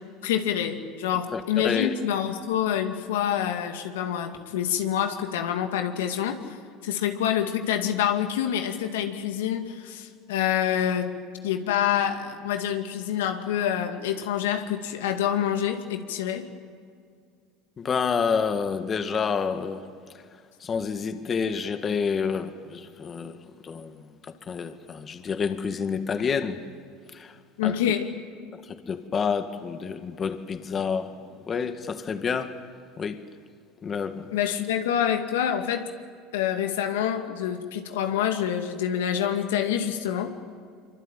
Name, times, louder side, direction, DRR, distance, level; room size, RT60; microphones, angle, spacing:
voice 1, 0.2-6.4 6.8-11.1 11.4-16.5 27.6-28.1 34.3-35.9 36.3-40.3, left 9 dB, 85° left, 5 dB, 2.3 m, -26 dB
voice 2, 1.3-1.9 17.8-19.8 20.6-23.4 23.6-24.0 24.5-26.6 27.1-27.4 27.6-27.8 28.5-31.1 31.5-32.5 33.0-33.2 33.8-34.3, left 6 dB, 35° left, 8 dB, 1.9 m, -28 dB
25.0 x 24.5 x 9.2 m, 2.2 s
supercardioid pair, 95°, 0 cm